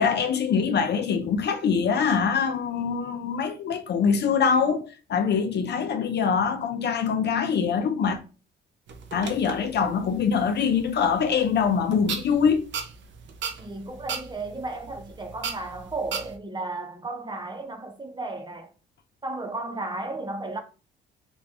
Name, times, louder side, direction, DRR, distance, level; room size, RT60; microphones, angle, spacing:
voice 1, 0.0-8.2 9.1-12.6, left 6 dB, 60° left, 0.7 m, -24 dB
sound 1, 8.9-16.4, right 6 dB, 65° right, 0.7 m, -38 dB
voice 2, 13.6-18.7 19.2-20.6, right 2 dB, 20° right, 0.9 m, -34 dB
3.1 x 2.5 x 3.4 m
cardioid pair, 90°, 20 cm